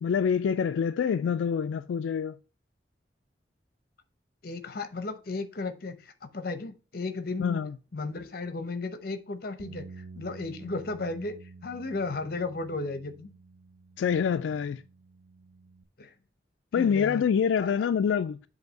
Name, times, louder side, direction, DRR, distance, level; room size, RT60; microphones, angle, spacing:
voice 1, 0.0-2.4 7.4-7.7 14.0-14.8 16.7-18.4, left 7 dB, 90° left, 0.3 m, -26 dB
voice 2, 4.4-7.6 7.9-13.3 16.0-16.1 16.7-17.3 17.6-17.9, left 3 dB, 55° left, 0.8 m, -35 dB
sound 1, 9.6-15.8, right 4 dB, 55° right, 0.6 m, -49 dB
7.9 x 2.7 x 5.1 m
head